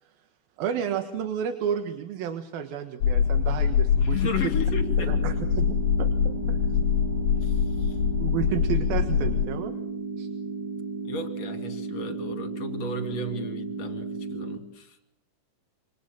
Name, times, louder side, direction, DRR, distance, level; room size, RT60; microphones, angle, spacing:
voice 1, 0.6-4.3 5.1-5.7 6.0-6.8 8.2-9.7 10.2-10.3, right 9 dB, 65° right, 8 dB, 3.0 m, -31 dB
sound 1, 3.0-9.5, left 7 dB, 70° left, 2.9 m, -24 dB
voice 2, 4.0-5.3 7.4-8.0 11.0-15.0, left 3 dB, 45° left, 7 dB, 3.2 m, -34 dB
sound 2, 4.6-14.6, right 4 dB, 40° right, 1.9 m, -34 dB
27.0 x 25.5 x 7.6 m, 0.74 s
omnidirectional pair, 4.9 m